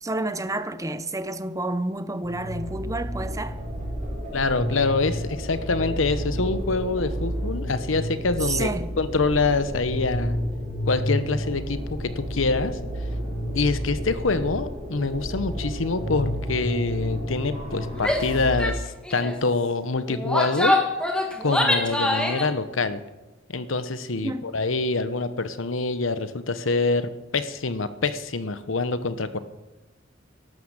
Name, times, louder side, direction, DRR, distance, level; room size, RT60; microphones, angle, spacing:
voice 1, 0.0-3.6 8.4-8.9 24.2-24.5, right 2 dB, 15° right, 0.7 m, -29 dB
sound 1, 2.2-18.6, equal, 40° right, 4.9 m, -31 dB
voice 2, 4.3-8.7 9.0-10.4 10.9-12.8 13.5-20.7 21.4-23.0 23.5-29.4, left 3 dB, 85° left, 1.0 m, -25 dB
Female speech woman speaking / Yell, 18.0-18.3 18.6-18.8 19.1-19.4 20.1-22.5, left 1 dB, 5° left, 1.7 m, -24 dB
12.5 x 11.5 x 7.4 m
head